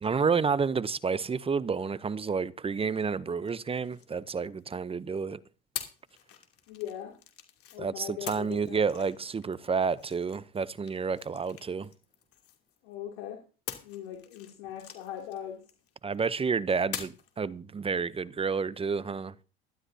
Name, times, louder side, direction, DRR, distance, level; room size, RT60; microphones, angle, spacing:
voice 1, 0.0-5.4 7.8-11.9 16.0-19.4, right 5 dB, 20° right, 0.7 m, -30 dB
sound 1, 3.4-4.9 5.7-7.8 8.3-12.9 13.7-16.2 16.9-17.4, left 10 dB, 50° left, 2.9 m, -45 dB
voice 2, 6.7-7.2 7.7-8.8 12.8-13.4 13.8-15.6, left 10 dB, 75° left, 2.8 m, -40 dB
18.5 x 12.5 x 2.8 m
hypercardioid pair, 85°, 29 cm